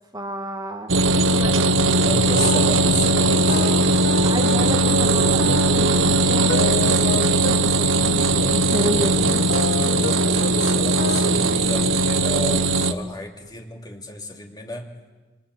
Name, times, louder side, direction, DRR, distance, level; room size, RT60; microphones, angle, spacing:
voice 1, 0.1-0.9 1.2-2.6 4.2-9.5, right 1 dB, 20° right, 4 dB, 1.7 m, -31 dB
sound 1, 0.9-12.9, right 2 dB, 75° right, 1.2 m, -19 dB
voice 2, 1.9-4.8 10.0-14.9, left 2 dB, 20° left, 2 dB, 3.0 m, -33 dB
sound 2, 2.2-7.5 8.0-8.2 8.7-10.1 10.4-10.5 10.8-11.4, left 2 dB, 70° left, 2.9 m, -29 dB
26.5 x 26.5 x 8.2 m, 1.2 s
head